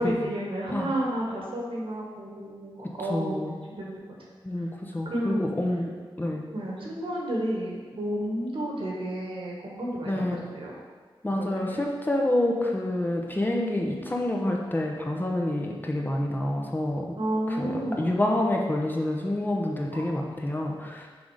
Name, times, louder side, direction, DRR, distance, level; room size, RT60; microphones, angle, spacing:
voice 1, 0.0-3.4 3.7-4.0 5.0-5.5 6.5-10.8 11.3-11.9 17.2-18.2 19.9-20.2, right 1 dB, 70° right, -3 dB, 1.6 m, -31 dB
voice 2, 3.1-3.6 4.4-5.9 6.2-6.5 10.1-10.4 11.2-17.2 17.5-21.1, left 1 dB, 20° left, 0 dB, 0.8 m, -28 dB
6.1 x 3.7 x 4.9 m, 1.5 s
wide cardioid pair, 85°, 9 cm